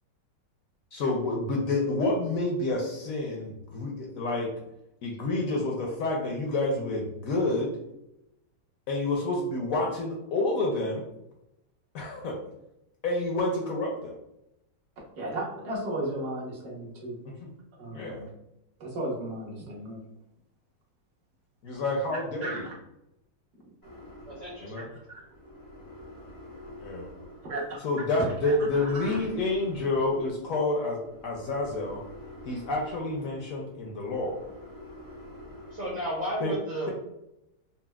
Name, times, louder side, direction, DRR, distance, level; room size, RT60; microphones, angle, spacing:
voice 1, 0.9-4.5 5.0-7.7 8.9-11.0 11.9-12.4 13.0-14.1 17.2-17.5 17.9-18.3 21.6-22.6 24.6-24.8 26.8-27.1 27.8-32.0 32.4-34.4 36.4-36.5, left 2 dB, 70° left, -1 dB, 0.8 m, -29 dB
voice 2, 15.1-17.2 17.8-18.3 18.8-20.0 22.4-22.6 25.1-25.2 27.5-27.6 28.1-29.2, right 1 dB, 65° right, -3 dB, 1.4 m, -34 dB
sound 1, 23.8-36.4, left 1 dB, 35° left, 0.3 m, -48 dB
voice 3, 24.3-24.7 35.7-36.9, equal, 50° right, -5 dB, 1.1 m, -33 dB
4.2 x 2.0 x 2.2 m, 0.84 s
omnidirectional pair, 1.9 m